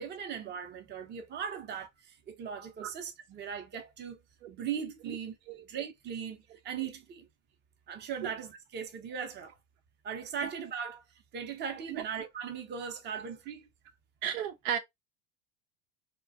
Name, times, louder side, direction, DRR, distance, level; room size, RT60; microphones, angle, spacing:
voice 1, 0.0-4.2 4.5-5.4 5.6-7.3 7.9-9.6 10.0-11.0 11.3-13.6, right 7 dB, 25° right, 0.6 m, -39 dB
voice 2, 14.2-14.8, right 9 dB, 75° right, 0.7 m, -34 dB
2.3 x 2.2 x 2.6 m
hypercardioid pair, 100°, 41 cm